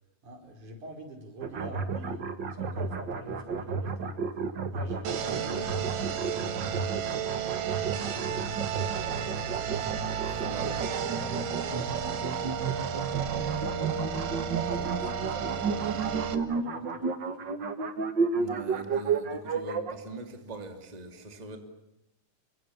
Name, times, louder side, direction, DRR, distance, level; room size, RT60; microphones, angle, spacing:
voice 1, 0.2-2.2 2.6-4.2 4.7-7.1 7.8-9.9 10.3-14.1 14.7-17.0 17.4-17.6 21.5-21.6, right 1 dB, 65° right, 4 dB, 6.6 m, -46 dB
sound 1, 1.4-19.9, right 5 dB, 40° right, 2.1 m, -32 dB
sound 2, 5.0-16.3, right 7 dB, 85° right, 3.4 m, -33 dB
voice 2, 10.2-11.0 18.3-21.6, right 2 dB, 15° right, 5 dB, 2.7 m, -42 dB
28.5 x 25.0 x 7.3 m, 0.86 s
omnidirectional pair, 3.7 m